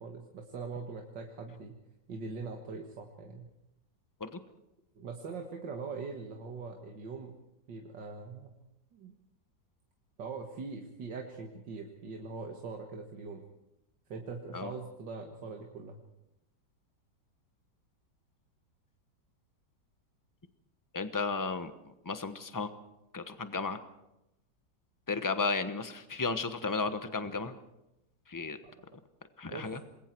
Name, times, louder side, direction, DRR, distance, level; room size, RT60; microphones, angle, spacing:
voice 1, 0.0-1.8 2.1-3.5 5.0-7.3 7.7-8.5 8.9-9.2 10.2-13.4 14.1-16.0 28.6-28.7 29.5-29.7, right 4 dB, 75° right, 2 dB, 2.2 m, -42 dB
voice 2, 20.9-21.7 22.0-22.7 23.1-23.8 25.1-27.6 28.3-28.6 29.4-29.8, left 4 dB, 15° left, 10 dB, 0.8 m, -33 dB
27.5 x 21.5 x 4.6 m, 0.90 s
omnidirectional pair, 2.0 m